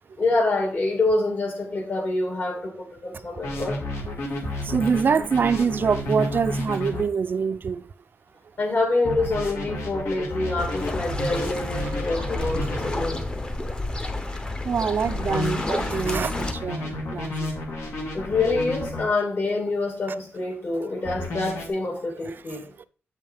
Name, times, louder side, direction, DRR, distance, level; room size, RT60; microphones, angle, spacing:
voice 1, 0.2-3.8 8.6-13.2 18.1-22.6, left 2 dB, 50° left, 2.3 m, -26 dB
sound 1, 3.4-7.0 9.0-13.0 15.0-19.0 21.0-21.7, left 2 dB, 85° left, 2.1 m, -31 dB
voice 2, 4.2-7.9 11.8-12.3 14.3-17.5 22.3-22.8, right 6 dB, 45° right, 0.3 m, -26 dB
sound 2, 10.6-16.5, left 2 dB, 20° left, 0.7 m, -30 dB
7.6 x 5.4 x 3.5 m
wide cardioid pair, 145°, 5 cm